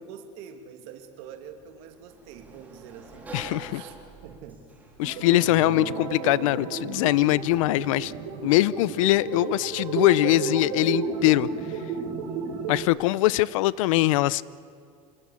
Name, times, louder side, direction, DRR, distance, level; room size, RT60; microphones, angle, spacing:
voice 1, 0.0-4.6 13.4-13.6, right 7 dB, 55° right, 6 dB, 2.6 m, -45 dB
Sliding door, 1.0-13.6, right 2 dB, 10° right, 3.6 m, -50 dB
voice 2, 3.3-3.8 5.0-8.1 8.4-11.5 12.7-14.4, left 18 dB, 80° left, 21 dB, 0.6 m, -22 dB
sound 1, 5.0-12.8, right 6 dB, 85° right, 4.1 m, -33 dB
Guitar, 5.4-12.0, right 6 dB, 40° right, 5.9 m, -42 dB
26.5 x 21.0 x 8.5 m, 2.4 s
cardioid pair, 175°, 17 cm